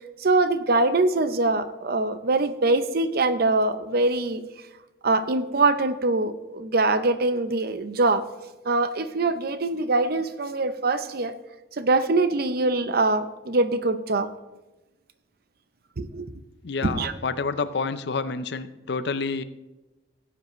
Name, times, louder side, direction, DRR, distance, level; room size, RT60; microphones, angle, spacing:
voice 1, 0.2-4.4 5.0-8.2 8.7-11.3 11.8-14.3 16.0-16.3 16.8-17.1, right 2 dB, 50° right, 11 dB, 0.6 m, -23 dB
voice 2, 16.6-19.4, left 4 dB, 60° left, 13 dB, 0.5 m, -28 dB
16.5 x 8.2 x 3.1 m, 1.1 s
head